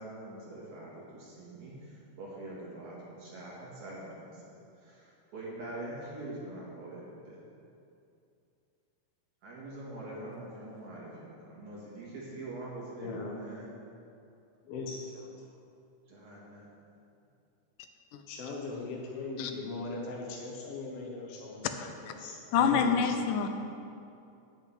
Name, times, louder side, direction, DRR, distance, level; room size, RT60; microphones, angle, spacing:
voice 1, 0.0-7.4 9.4-13.7 15.4-15.5 16.1-16.7, right 2 dB, 65° right, -6 dB, 2.9 m, -44 dB
voice 2, 13.0-13.3 14.6-15.3 18.3-23.5, left 3 dB, 65° left, -1 dB, 1.6 m, -40 dB
voice 3, 21.8-22.1 22.5-23.5, left 6 dB, 85° left, 7 dB, 2.3 m, -27 dB
7.8 x 6.8 x 8.3 m, 2.6 s
omnidirectional pair, 3.7 m